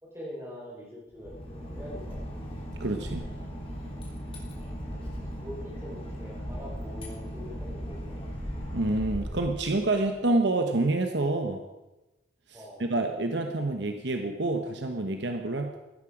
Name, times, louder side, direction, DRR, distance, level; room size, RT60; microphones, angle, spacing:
voice 1, 0.0-2.2 4.8-8.2 12.5-12.9 15.7-15.8, equal, 15° right, -4 dB, 4.4 m, -44 dB
Boat Water vehicle / Engine, 1.1-10.1, equal, 30° left, 3.5 m, -37 dB
voice 2, 2.8-3.3 8.7-11.6 12.5-15.8, right 2 dB, 60° right, 5 dB, 1.0 m, -28 dB
15.5 x 12.5 x 5.0 m, 1.1 s
head